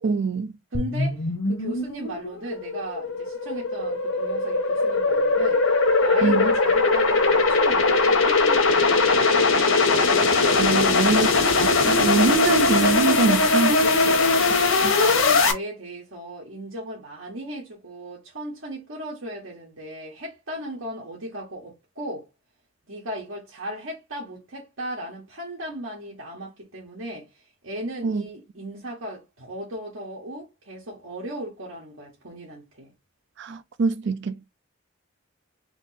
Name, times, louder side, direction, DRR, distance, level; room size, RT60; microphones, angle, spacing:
voice 1, 0.0-0.5 6.2-6.5 10.6-11.3 11.6-13.7 14.8-14.9 28.0-28.2 33.4-34.5, right 4 dB, 60° right, 0.4 m, -24 dB
sound 1, 0.7-15.5, left 3 dB, 90° left, 1.1 m, -20 dB
voice 2, 0.7-9.9 10.6-11.0 11.3-11.4 13.8-14.3 14.6-22.3 22.9-32.9, equal, 80° right, 1.4 m, -37 dB
3.5 x 3.0 x 3.9 m
head